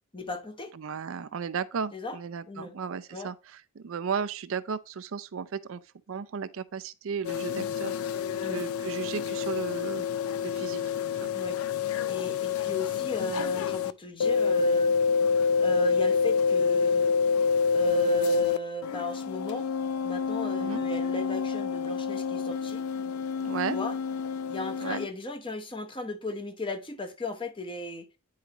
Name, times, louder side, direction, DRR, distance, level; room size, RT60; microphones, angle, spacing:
voice 1, 0.1-0.7 1.9-2.2 2.5-2.8 3.1-3.3 8.4-8.6 11.3-11.6 12.1-14.9 15.6-17.2 17.7-19.7 20.0-22.8 23.7-23.9 24.5-28.1, equal, 25° left, 1.0 m, -35 dB
voice 2, 0.7-5.8 6.1-7.9 8.4-10.0 10.4-10.8 11.2-11.3 12.6-12.7 20.6-20.8 23.4-23.8 24.8-25.0, right 6 dB, 65° right, 0.5 m, -35 dB
sound 1, 7.2-13.9 14.2-18.6 18.8-25.1, left 6 dB, 75° left, 0.4 m, -27 dB
9.5 x 4.8 x 2.9 m
head